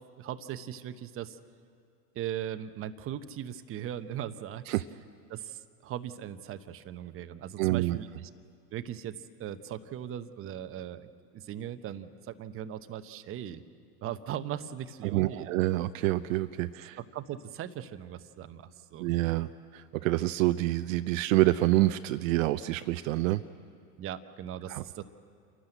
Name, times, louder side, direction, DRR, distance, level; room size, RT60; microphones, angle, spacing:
voice 1, 0.0-1.4 2.1-4.7 5.3-8.1 8.7-11.1 11.3-13.6 14.0-15.5 17.1-19.1 24.0-25.0, right 10 dB, 30° right, 10 dB, 0.9 m, -39 dB
voice 2, 7.6-8.0 15.0-17.0 19.0-19.5 19.7-23.4 24.7-24.8, right 17 dB, 60° right, 11 dB, 0.7 m, -27 dB
29.0 x 12.0 x 7.9 m, 2.4 s
hypercardioid pair, 105°, 46 cm